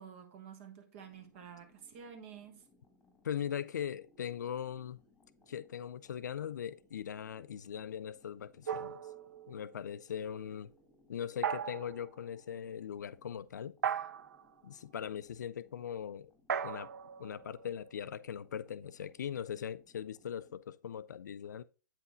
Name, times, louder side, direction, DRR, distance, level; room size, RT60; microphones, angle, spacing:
voice 1, 0.0-2.6, right 7 dB, 40° right, 1.2 m, -50 dB
sound 1, 0.9-20.6, left 2 dB, 5° left, 1.5 m, -68 dB
voice 2, 3.2-5.0 5.5-9.0 9.5-10.7 11.1-13.8 14.6-16.3 16.6-16.9 17.2-21.6, left 9 dB, 65° left, 0.4 m, -40 dB
sound 2, 8.7-9.8 11.4-12.1 13.8-14.5 16.5-18.3, right 8 dB, 60° right, 0.4 m, -38 dB
8.2 x 5.8 x 2.5 m
figure-of-eight pair, 115°, 11 cm